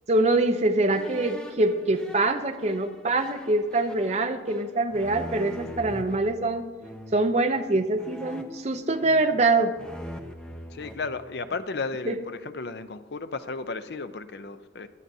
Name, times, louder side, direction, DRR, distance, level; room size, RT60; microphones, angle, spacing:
voice 1, 0.1-6.6 7.1-9.7 12.0-12.2, right 2 dB, 35° right, 7 dB, 0.7 m, -24 dB
sound 1, 0.9-6.2 6.8-7.3 8.0-9.4 9.7-11.7, equal, 5° left, 0.6 m, -42 dB
voice 2, 10.7-14.9, left 4 dB, 60° left, 11 dB, 0.6 m, -34 dB
16.5 x 11.5 x 2.7 m, 1.4 s
head